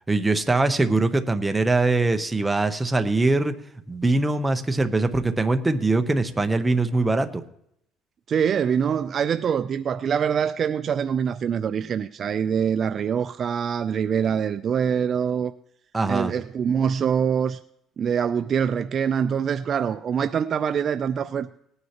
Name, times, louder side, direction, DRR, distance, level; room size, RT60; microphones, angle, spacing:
voice 1, 0.1-3.5 3.9-7.4 15.9-16.3, right 2 dB, 10° right, 0.7 m, -22 dB
voice 2, 8.3-15.5 16.1-17.6 18.0-21.5, right 7 dB, 35° right, 0.3 m, -24 dB
19.0 x 9.5 x 2.9 m
cardioid pair, 140°, 0 cm